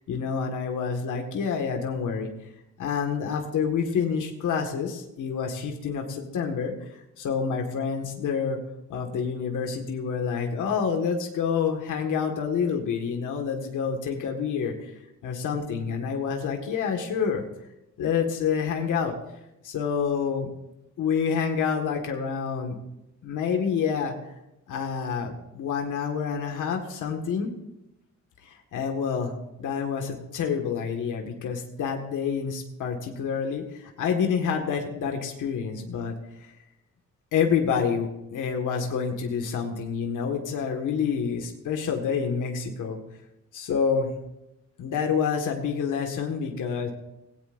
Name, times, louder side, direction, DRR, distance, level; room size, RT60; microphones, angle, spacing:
voice 1, 0.0-2.3 2.8-6.7 7.2-8.6 8.9-14.9 15.2-17.4 18.0-19.1 19.6-20.5 21.0-22.8 23.2-24.3 24.7-27.5 28.4-29.3 29.6-36.1 36.4-36.5 37.3-43.0 43.5-44.1 44.8-46.9, left 6 dB, 90° left, 2 dB, 1.8 m, -28 dB
18.0 x 17.0 x 2.6 m, 0.90 s
wide cardioid pair, 150°, 30 cm